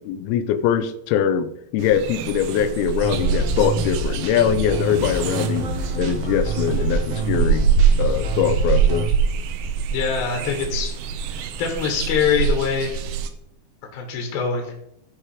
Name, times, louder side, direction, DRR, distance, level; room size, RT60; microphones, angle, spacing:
voice 1, 0.0-5.7 6.0-7.7 8.0-9.1, left 9 dB, 85° left, 11 dB, 2.1 m, -22 dB
sound 1, 1.8-13.3, right 6 dB, 85° right, 2.0 m, -24 dB
sound 2, 3.0-9.1, right 1 dB, 70° right, 1.4 m, -28 dB
voice 2, 9.9-10.9 11.3-13.0 13.9-14.7, left 6 dB, 65° left, 3 dB, 2.8 m, -24 dB
13.0 x 4.9 x 4.9 m, 0.76 s
omnidirectional pair, 5.1 m